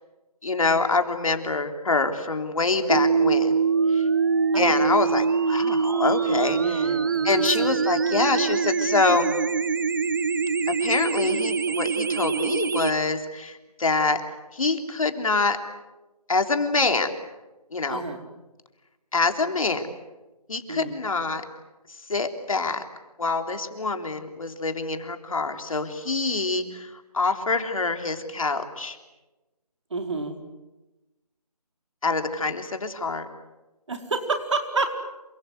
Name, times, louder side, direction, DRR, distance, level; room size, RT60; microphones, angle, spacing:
voice 1, 0.4-3.5 3.9-4.0 4.5-6.9 7.2-9.3 10.8-14.2 14.5-15.6 16.3-17.1 17.7-18.0 19.1-19.9 20.5-21.4 22.1-22.8 23.2-29.0 32.0-33.3, left 3 dB, 55° left, 6 dB, 3.5 m, -25 dB
sound 1, 2.9-12.9, right 5 dB, 30° right, 0.9 m, -24 dB
voice 2, 6.4-7.9 17.9-18.2 20.7-20.9 29.9-30.3 33.9-34.9, right 3 dB, 50° right, 5 dB, 4.6 m, -30 dB
28.5 x 25.5 x 8.0 m, 1.1 s
figure-of-eight pair, 165°, 20 cm